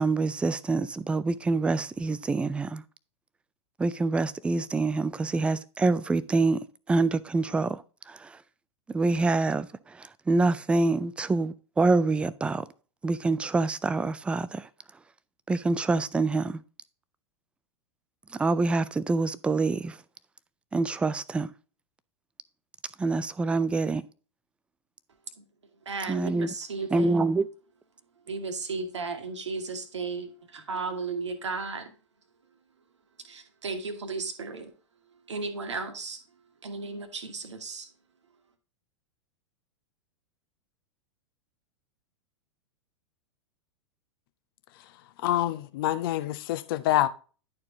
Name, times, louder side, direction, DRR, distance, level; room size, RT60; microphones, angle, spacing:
voice 1, 0.0-2.8 3.8-6.6 6.9-7.8 8.9-9.7 10.3-12.6 13.0-14.6 15.5-16.6 18.4-19.9 20.7-21.5 23.0-24.0 26.1-26.5 26.9-27.5, right 3 dB, 5° right, 0.3 m, -26 dB
voice 2, 25.9-27.2 28.3-31.8 33.3-34.7 35.3-36.2 36.6-37.9, right 4 dB, 70° right, 1.5 m, -34 dB
voice 3, 45.2-47.1, left 14 dB, 50° left, 0.7 m, -26 dB
10.5 x 4.6 x 3.6 m
figure-of-eight pair, 95°, 16 cm